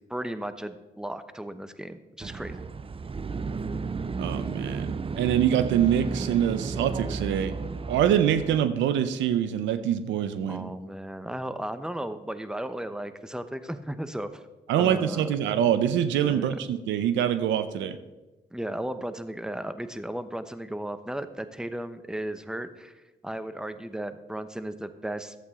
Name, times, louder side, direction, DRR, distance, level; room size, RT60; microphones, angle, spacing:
voice 1, 0.0-2.7 10.5-14.4 14.8-15.4 16.2-16.6 18.5-22.9 23.2-25.3, right 1 dB, 5° right, 11 dB, 0.8 m, -35 dB
sound 1, 2.2-8.6, right 4 dB, 30° right, 0.5 m, -33 dB
voice 2, 4.2-4.9 5.2-7.5 7.9-10.7 14.7-18.0, right 10 dB, 85° right, 12 dB, 0.6 m, -25 dB
12.5 x 8.2 x 3.7 m, 1.1 s
supercardioid pair, 50°, 19 cm